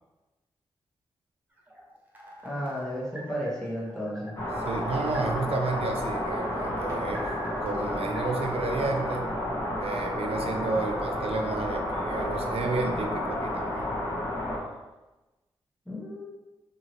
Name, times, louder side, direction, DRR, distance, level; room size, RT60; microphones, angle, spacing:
sound 1, 1.5-9.1, equal, 15° right, 0.8 m, -47 dB
voice 1, 2.4-4.4 15.9-16.3, equal, 5° left, -6 dB, 1.3 m, -33 dB
sound 2, 4.4-14.6, left 1 dB, 30° left, 1.1 m, -31 dB
voice 2, 4.6-7.3 7.6-9.2 9.8-13.9, right 3 dB, 75° right, 3 dB, 0.4 m, -31 dB
2.8 x 2.7 x 3.0 m, 1.1 s
cardioid pair, 50°, 10 cm